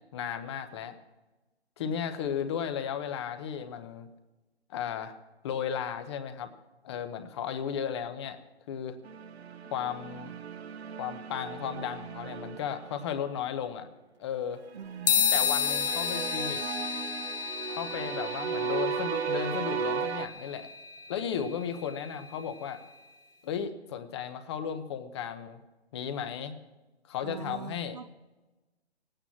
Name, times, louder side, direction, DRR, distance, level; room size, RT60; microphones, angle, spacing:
voice 1, 0.1-1.0 1.8-4.1 4.7-5.1 5.4-6.5 6.8-8.4 8.7-9.0 9.7-10.4 11.0-13.9 14.2-14.6 15.3-16.6 17.7-20.7 21.1-22.8 23.4-25.6 25.9-26.6 27.1-28.0, left 8 dB, 25° left, 0.9 m, -35 dB
sound 1, 9.0-13.4 14.8-20.3, right 6 dB, 75° right, 0.9 m, -36 dB
voice 2, 14.7-15.5 27.2-28.1, right 7 dB, 40° right, 0.4 m, -43 dB
sound 2, 15.1-22.7, left 8 dB, 55° left, 1.0 m, -32 dB
18.0 x 9.0 x 7.3 m
hypercardioid pair, 150°, 33 cm